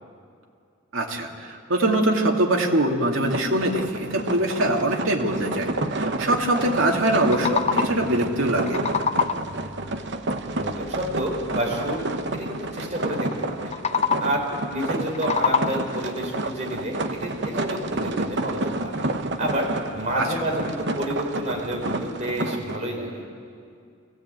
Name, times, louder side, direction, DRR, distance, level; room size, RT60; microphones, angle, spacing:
voice 1, 0.9-8.8 20.2-20.3, right 1 dB, 85° right, 1 dB, 2.4 m, -23 dB
sound 1, 3.2-22.8, right 2 dB, 60° right, 1.1 m, -30 dB
sound 2, 7.2-8.1 8.5-9.6 13.6-14.5 14.9-16.0, left 6 dB, 35° left, 0.6 m, -26 dB
voice 2, 10.5-12.0 12.3-13.8 14.2-19.1 19.4-19.7 19.9-23.2, right 1 dB, 35° right, -1 dB, 4.6 m, -29 dB
23.5 x 16.5 x 9.1 m, 2.4 s
head